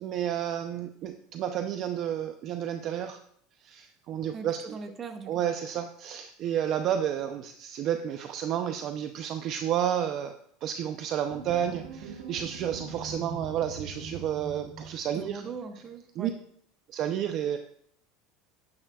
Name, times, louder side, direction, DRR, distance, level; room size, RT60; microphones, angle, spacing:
voice 1, 0.0-3.2 3.6-4.8 5.3-10.3 10.6-15.4 16.2-16.3 16.9-17.6, right 10 dB, 45° right, 7 dB, 0.5 m, -31 dB
voice 2, 4.3-5.4 15.1-16.3, right 5 dB, 25° right, 6 dB, 1.1 m, -40 dB
sound 1, 11.3-15.6, right 5 dB, 80° right, 1.3 m, -42 dB
11.0 x 9.6 x 2.3 m, 0.65 s
supercardioid pair, 145°, 0 cm